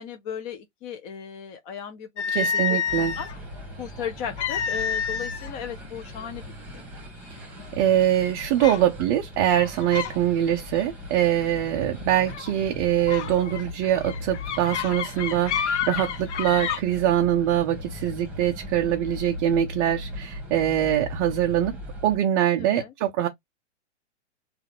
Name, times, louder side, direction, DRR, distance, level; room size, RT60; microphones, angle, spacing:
voice 1, 0.0-3.3 3.8-6.4 22.6-22.9, left 8 dB, 30° left, 0.6 m, -36 dB
sound 1, 2.2-3.4 4.4-5.5 5.8-6.1 6.8-6.9 7.4-7.8 8.6-8.9 9.5-10.2 10.5-10.8 12.3-12.5 13.1-16.8, left 7 dB, 70° left, 0.7 m, -29 dB
voice 2, 2.3-3.1 7.7-21.8 22.0-23.3, right 11 dB, 20° right, 0.3 m, -23 dB
sound 2, 2.9-22.2, left 1 dB, 5° right, 1.4 m, -39 dB
3.6 x 2.4 x 3.4 m
hypercardioid pair, 125°, 36 cm